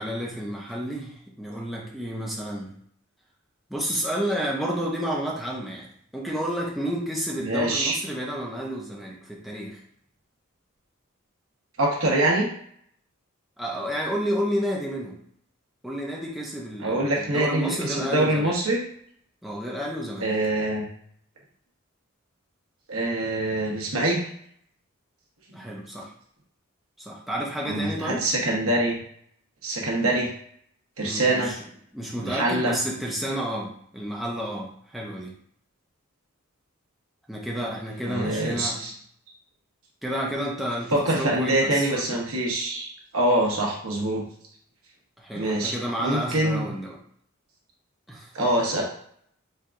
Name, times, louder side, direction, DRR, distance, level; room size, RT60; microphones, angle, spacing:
voice 1, 0.0-2.7 3.7-5.9 6.1-9.8 13.6-15.2 15.8-18.5 19.4-20.3 25.5-26.1 27.0-28.2 31.0-31.6 31.9-35.3 37.3-38.8 40.0-42.0 45.2-47.0 48.1-48.3, equal, ahead, -4 dB, 0.7 m, -30 dB
voice 2, 7.4-8.0 11.8-12.5 16.8-18.8 20.2-20.8 22.9-24.3 25.5-25.7 27.6-29.0 29.6-30.3 31.0-31.5 32.2-32.7 38.0-38.9 40.9-44.2 45.3-45.7 46.0-46.7 48.3-48.8, right 1 dB, 80° right, -2 dB, 1.1 m, -24 dB
4.5 x 3.4 x 2.5 m, 0.64 s
head